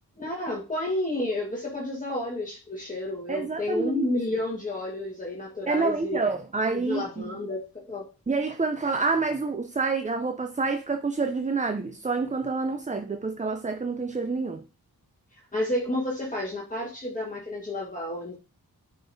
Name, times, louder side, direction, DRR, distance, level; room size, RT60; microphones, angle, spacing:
voice 1, 0.2-6.2 6.9-8.1 15.5-18.4, left 1 dB, 20° left, 1.5 m, -30 dB
voice 2, 3.3-4.1 5.7-7.3 8.3-14.6, right 4 dB, 20° right, 0.4 m, -28 dB
9.8 x 5.0 x 2.6 m
wide cardioid pair, 80°, 38 cm